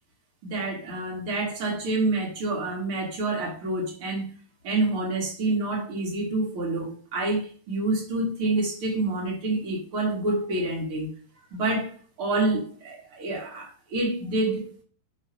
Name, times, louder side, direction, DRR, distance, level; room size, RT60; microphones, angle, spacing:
voice 1, 0.4-4.2 4.6-11.1 11.5-14.8, right 2 dB, 55° right, 1.5 m, -28 dB
7.1 x 3.2 x 5.9 m
omnidirectional pair, 5.8 m